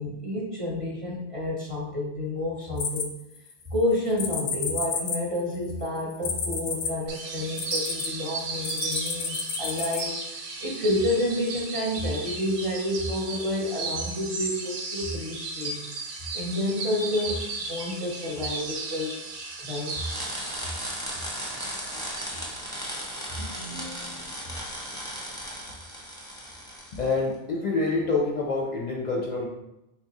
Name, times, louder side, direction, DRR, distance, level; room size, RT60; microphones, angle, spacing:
voice 1, 0.0-3.2 3.7-15.9 16.3-19.1 19.6-20.2 22.0-22.2, left 1 dB, 35° right, -4 dB, 0.7 m, -29 dB
sound 1, 2.8-3.6 4.2-8.1 8.6-10.0, left 5 dB, 90° left, 0.8 m, -31 dB
sound 2, 7.1-23.0, right 3 dB, 80° right, 0.9 m, -35 dB
sound 3, 19.9-27.1, equal, 5° left, 0.6 m, -36 dB
voice 2, 23.4-24.6 26.9-29.5, left 3 dB, 50° left, -2 dB, 0.6 m, -28 dB
3.5 x 2.8 x 2.9 m, 0.90 s
omnidirectional pair, 1.1 m